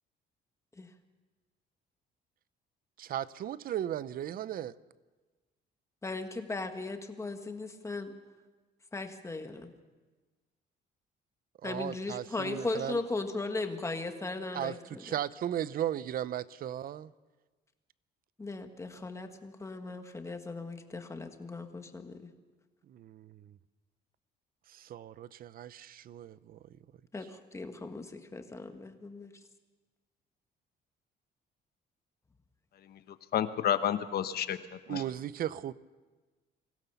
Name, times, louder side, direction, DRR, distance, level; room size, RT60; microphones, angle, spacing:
voice 1, 3.0-4.7 11.6-13.0 14.5-17.1 22.9-23.5 24.7-26.6 34.9-35.7, right 11 dB, 50° right, 0.6 m, -36 dB
voice 2, 6.0-8.1 8.9-9.7 11.6-15.2 18.4-22.2 27.1-29.3, left 3 dB, 15° left, 1.5 m, -37 dB
voice 3, 32.8-35.0, left 9 dB, 55° left, 1.1 m, -31 dB
24.0 x 16.5 x 7.0 m
cardioid pair, 145°, 19 cm